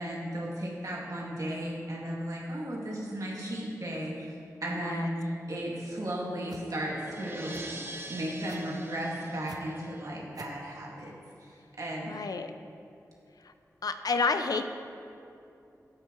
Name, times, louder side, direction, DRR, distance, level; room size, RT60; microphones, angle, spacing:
voice 1, 0.0-4.3 4.6-7.8 8.1-11.1 11.8-12.2, right 1 dB, 60° right, -4 dB, 2.3 m, -35 dB
voice 2, 4.7-5.1 12.0-12.5 13.4-13.5 13.8-14.7, left 4 dB, 80° left, 8 dB, 0.5 m, -30 dB
sound 1, 5.3-10.2, right 1 dB, 35° right, 0.9 m, -45 dB
sound 2, 6.5-6.7 7.5-7.7 8.5-8.7 9.5-9.6 10.3-10.6, right 5 dB, 85° right, 0.6 m, -47 dB
12.5 x 8.7 x 3.2 m, 2.7 s
cardioid pair, 50°, 6 cm